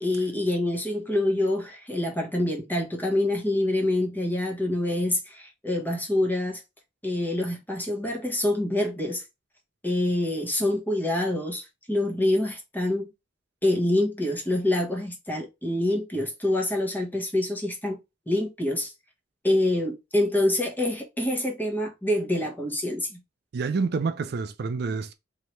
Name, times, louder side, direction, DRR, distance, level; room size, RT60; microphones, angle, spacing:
voice 1, 0.0-6.6 7.0-9.2 9.8-13.1 13.6-18.0 18.3-18.9 19.4-23.2, left 1 dB, 10° left, 1.0 m, -26 dB
voice 2, 23.5-25.1, right 4 dB, 55° right, 0.4 m, -28 dB
3.2 x 2.7 x 4.3 m
head